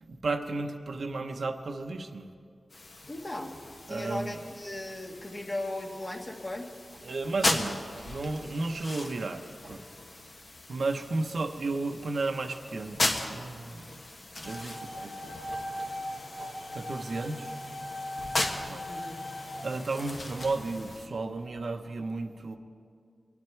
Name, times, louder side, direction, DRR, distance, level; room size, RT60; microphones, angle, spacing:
voice 1, 0.0-2.3 3.9-4.4 7.0-9.8 10.7-13.0 13.3-13.9 14.4-15.4 16.7-17.5 18.7-18.8 19.6-22.6, right 3 dB, 70° right, 6 dB, 0.8 m, -33 dB
sound 1, 2.7-21.1, left 2 dB, 50° left, 1.4 m, -38 dB
voice 2, 3.1-3.5 3.9-6.7 18.9-19.2, left 1 dB, 35° left, 1 dB, 1.7 m, -37 dB
sound 2, 14.4-20.8, left 1 dB, 75° left, 2.9 m, -39 dB
24.0 x 9.6 x 4.5 m, 2.2 s
wide cardioid pair, 100°, 0 cm